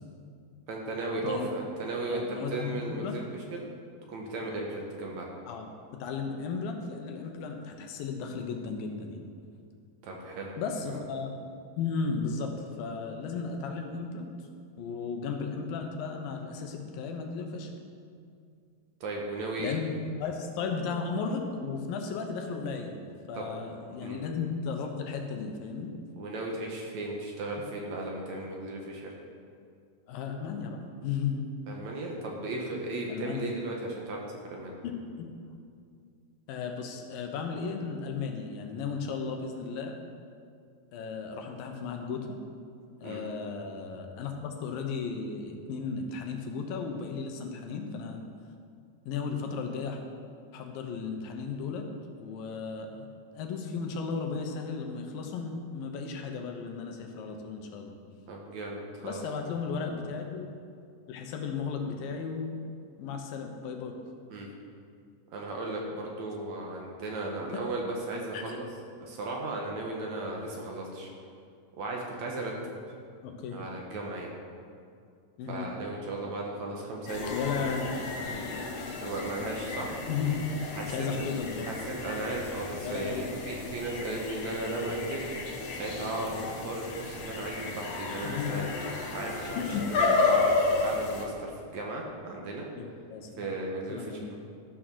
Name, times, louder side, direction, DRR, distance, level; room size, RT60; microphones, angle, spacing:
voice 1, 0.7-3.6 4.1-5.3 10.0-10.6 10.8-11.0 19.0-19.8 20.6-20.7 23.3-23.5 24.0-24.2 26.2-29.1 31.7-34.2 34.5-34.7 43.0-43.2 58.3-59.2 64.3-64.5 65.3-68.6 69.0-71.1 71.8-72.7 73.5-74.3 75.5-77.7 79.0-79.9 80.7-81.2 81.6-85.2 85.5-88.7 89.1-90.5 90.8-92.7 93.4-94.4, right 2 dB, 65° right, -1 dB, 2.2 m, -36 dB
voice 2, 2.0-3.2 5.5-5.7 6.0-9.2 10.6-11.3 11.8-12.5 12.8-14.3 14.8-17.7 19.6-19.9 20.2-23.0 23.3-25.9 30.1-31.4 33.1-33.5 34.8-35.3 36.5-39.9 40.9-42.4 43.0-48.2 49.1-50.0 50.5-51.9 52.2-53.1 53.3-57.9 59.0-60.5 61.1-62.6 63.0-63.9 68.3-68.6 73.2-73.6 75.4-75.7 77.3-78.5 80.1-80.4 80.8-81.7 82.8-83.3 88.2-88.6 89.6-89.9 92.8-93.5 93.9-94.3, left 5 dB, 85° left, 3 dB, 2.8 m, -35 dB
sound 1, 77.1-91.2, left 3 dB, 60° left, 1.9 m, -32 dB
12.5 x 6.4 x 6.2 m, 2.4 s
omnidirectional pair, 4.0 m